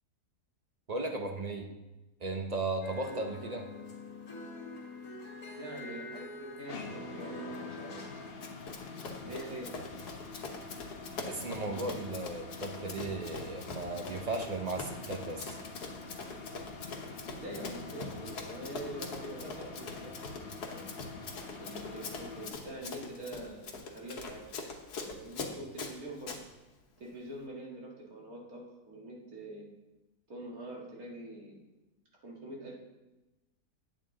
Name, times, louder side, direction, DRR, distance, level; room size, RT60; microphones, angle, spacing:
voice 1, 0.9-1.7 2.2-3.7 11.2-15.6, right 2 dB, 50° right, 4 dB, 0.4 m, -36 dB
sound 1, 2.8-8.3, left 1 dB, 65° left, 2.4 m, -45 dB
voice 2, 5.6-8.1 9.2-9.8 17.4-20.9 21.6-24.5 24.9-26.4 27.0-29.7 30.3-31.6 32.2-32.7, right 1 dB, 70° right, -2 dB, 2.3 m, -45 dB
sound 2, 6.7-22.5, left 4 dB, 45° left, 0.9 m, -46 dB
Run, 8.4-26.4, left 3 dB, 85° left, 1.6 m, -43 dB
9.0 x 8.7 x 3.7 m, 1.0 s
omnidirectional pair, 1.6 m